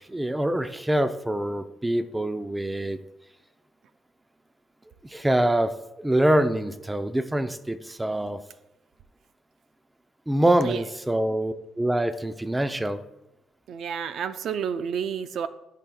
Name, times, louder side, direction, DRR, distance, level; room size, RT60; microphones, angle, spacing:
voice 1, 0.0-3.0 5.0-8.4 10.3-13.0, right 1 dB, 10° right, 10 dB, 0.6 m, -25 dB
voice 2, 13.7-15.5, right 7 dB, 70° right, 11 dB, 0.5 m, -30 dB
14.0 x 5.7 x 2.3 m, 0.91 s
cardioid pair, 90°, 0 cm